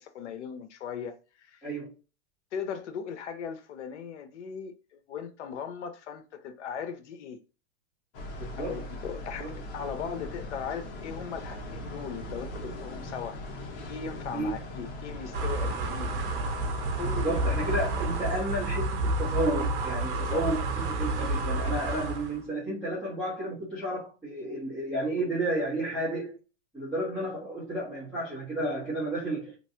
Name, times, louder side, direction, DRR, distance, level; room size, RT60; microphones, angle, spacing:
voice 1, 0.0-1.7 2.5-7.4 8.7-13.4 13.9-16.1 17.0-17.3 20.2-20.4 21.6-21.7, left 7 dB, 85° left, 0.8 m, -38 dB
voice 2, 1.6-1.9 8.4-8.9 9.4-9.5 14.3-14.5 17.0-26.3 26.7-29.6, right 1 dB, 5° left, 1.2 m, -32 dB
sound 1, 8.1-18.4, left 1 dB, 55° left, 1.1 m, -40 dB
sound 2, 15.3-22.4, right 2 dB, 55° right, 0.8 m, -30 dB
3.1 x 2.6 x 2.7 m
supercardioid pair, 155°, 34 cm